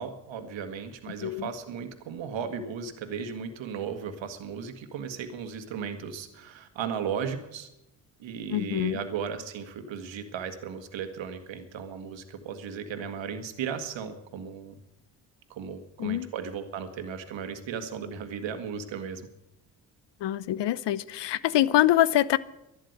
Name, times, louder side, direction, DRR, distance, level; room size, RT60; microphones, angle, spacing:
voice 1, 0.0-7.7 8.2-14.8 15.5-19.3, right 7 dB, 65° right, 8 dB, 1.9 m, -36 dB
voice 2, 8.5-9.0 16.0-16.3 20.2-22.4, left 13 dB, 60° left, 19 dB, 0.8 m, -24 dB
11.5 x 11.0 x 8.0 m, 0.87 s
hypercardioid pair, 50°, 48 cm